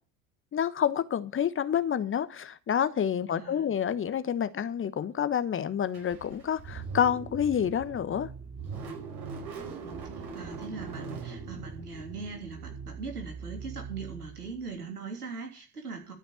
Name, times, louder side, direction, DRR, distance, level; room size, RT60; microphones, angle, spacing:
voice 1, 0.5-8.3, left 8 dB, 25° left, 1.1 m, -28 dB
voice 2, 3.3-3.6 9.4-16.1, right 4 dB, 80° right, 3.3 m, -41 dB
Car / Engine starting, 5.9-14.7, right 5 dB, 55° right, 5.5 m, -41 dB
13.0 x 5.8 x 8.4 m
figure-of-eight pair, 65°, 45 cm